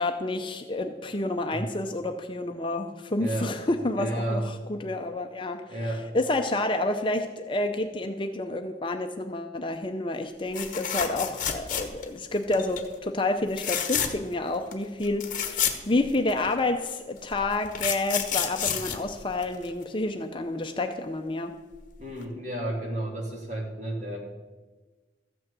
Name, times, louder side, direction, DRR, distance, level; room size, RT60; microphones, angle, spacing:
voice 1, 0.0-5.8 6.1-21.5, left 2 dB, 25° left, 6 dB, 0.6 m, -29 dB
voice 2, 3.2-3.5 4.0-4.5 5.7-6.1 22.0-24.2, right 1 dB, 40° right, -1 dB, 2.6 m, -31 dB
sound 1, 10.5-12.2 12.5-12.9 13.5-14.3 14.7-14.8 15.0-16.5 17.3-19.8 21.7-21.9 22.2-22.3, left 9 dB, 45° left, 1.2 m, -30 dB
14.0 x 6.2 x 8.1 m, 1.3 s
head